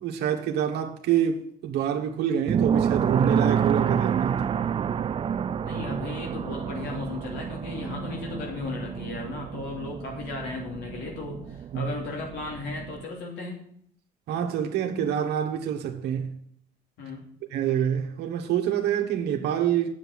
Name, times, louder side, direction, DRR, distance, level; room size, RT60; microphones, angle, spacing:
voice 1, 0.0-4.4 11.7-11.9 14.3-16.3 17.5-19.9, right 9 dB, 75° right, 1.3 m, -26 dB
sound 1, 2.5-13.0, right 8 dB, 30° right, 0.4 m, -29 dB
voice 2, 5.6-13.6 17.0-17.2, left 3 dB, 80° left, 2.9 m, -35 dB
8.1 x 7.0 x 7.3 m
cardioid pair, 110°, 17 cm